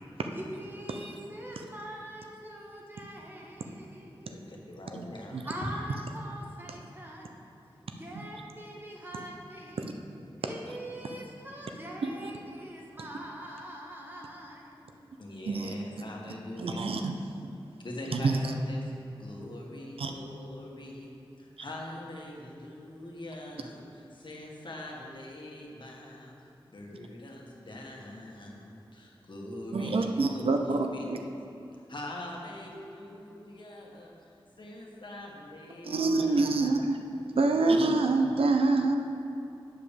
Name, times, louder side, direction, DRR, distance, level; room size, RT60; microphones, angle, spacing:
voice 1, 0.3-4.4 5.5-7.3 8.0-9.9 10.4-14.9, equal, 20° right, -2 dB, 1.7 m, -43 dB
voice 2, 4.3-5.7 8.0-8.1 15.2-16.9 17.8-18.9 19.2-26.3 26.7-31.0 31.7-36.4 37.4-37.7, left 1 dB, 60° left, -2 dB, 1.5 m, -43 dB
voice 3, 16.6-17.2 18.1-18.4 20.0-20.1 29.7-30.8 31.1-31.2 35.8-37.0 37.4-39.0, right 3 dB, 90° right, 5 dB, 0.6 m, -26 dB
8.4 x 4.9 x 7.0 m, 2.8 s
wide cardioid pair, 65°, 9 cm